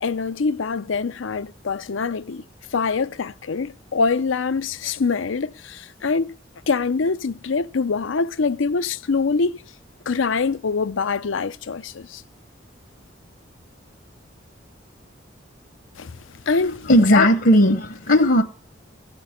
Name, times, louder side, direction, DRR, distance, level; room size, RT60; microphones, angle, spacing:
voice 1, 0.0-2.4 2.7-6.3 6.7-9.6 10.1-12.2 16.0-16.1 16.5-17.3, left 4 dB, 85° left, 0.6 m, -24 dB
voice 2, 16.6-18.4, equal, 65° left, 1.0 m, -16 dB
15.5 x 6.2 x 7.0 m
head